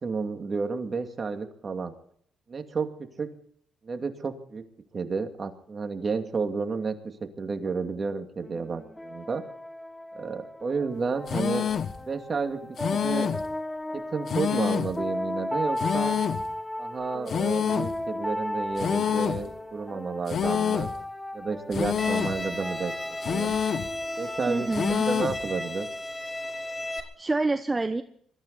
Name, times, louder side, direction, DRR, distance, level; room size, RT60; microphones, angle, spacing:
voice 1, 0.0-1.9 2.5-2.9 3.2-3.3 3.8-4.6 4.9-7.0 7.4-9.4 10.1-11.6 12.1-13.3 14.1-16.1 16.8-20.9 21.3-23.6 24.2-24.7 25.1-25.9, right 4 dB, 40° right, 5 dB, 2.5 m, -31 dB
sound 1, 8.4-25.9, left 1 dB, 10° left, 1.3 m, -36 dB
sound 2, 11.3-12.0 12.8-13.5 14.3-15.0 15.8-16.5 17.3-18.0 18.8-19.5 20.3-21.0 21.7-22.4 23.2-23.9 24.7-25.4, left 8 dB, 55° left, 1.0 m, -27 dB
Bowed string instrument, 22.0-27.0, left 1 dB, 25° left, 3.2 m, -34 dB
voice 2, 24.5-25.0 27.0-28.0, right 3 dB, 20° right, 9 dB, 1.0 m, -27 dB
23.0 x 14.5 x 4.2 m, 0.63 s
cardioid pair, 90°, 0 cm